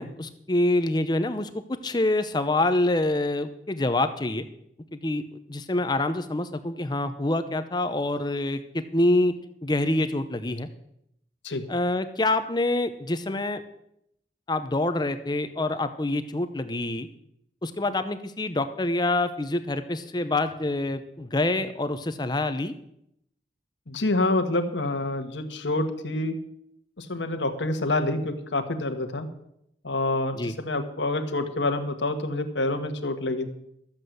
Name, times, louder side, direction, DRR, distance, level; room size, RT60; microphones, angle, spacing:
voice 1, 0.0-1.5 1.8-4.4 4.9-5.2 5.5-9.3 9.6-10.7 11.7-13.6 14.5-17.1 17.6-22.7 30.4-30.5, left 2 dB, 25° left, 10 dB, 0.7 m, -26 dB
voice 2, 23.9-26.3 27.0-29.3 29.8-33.5, left 2 dB, 90° left, 8 dB, 1.5 m, -27 dB
13.5 x 7.7 x 7.9 m, 0.77 s
head